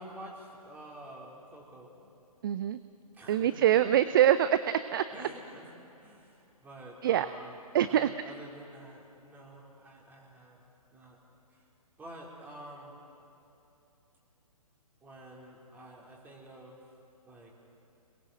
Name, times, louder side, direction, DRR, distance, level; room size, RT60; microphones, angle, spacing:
voice 1, 0.0-2.1 3.1-3.7 5.1-5.7 6.0-7.6 7.8-10.6 10.9-11.2 11.5-11.7 12.0-13.0 15.0-16.9 17.3-17.5, right 1 dB, 10° right, -3 dB, 4.2 m, -49 dB
voice 2, 2.4-2.8 3.3-4.6 4.9-5.0 7.0-7.3 7.7-8.1, right 11 dB, 35° right, 13 dB, 0.6 m, -24 dB
29.0 x 21.0 x 7.7 m, 2.8 s
figure-of-eight pair, 130°, 20 cm